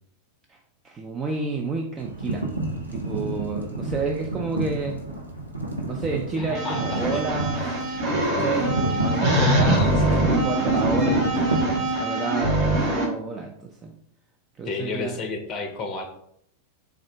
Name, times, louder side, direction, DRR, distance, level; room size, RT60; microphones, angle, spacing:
voice 1, 0.8-2.5 2.9-5.0 5.9-7.8 8.3-11.7 12.0-13.9 14.6-15.2, right 4 dB, 20° right, 2 dB, 0.4 m, -30 dB
sound 1, 2.0-12.0, right 2 dB, 85° right, 0.7 m, -30 dB
voice 2, 6.4-7.2 9.2-10.2 14.6-16.1, left 4 dB, 30° left, 4 dB, 0.6 m, -31 dB
sound 2, 6.5-13.0, right 1 dB, 40° right, 1.0 m, -23 dB
3.6 x 2.3 x 3.3 m, 0.70 s
figure-of-eight pair, 90°, 0 cm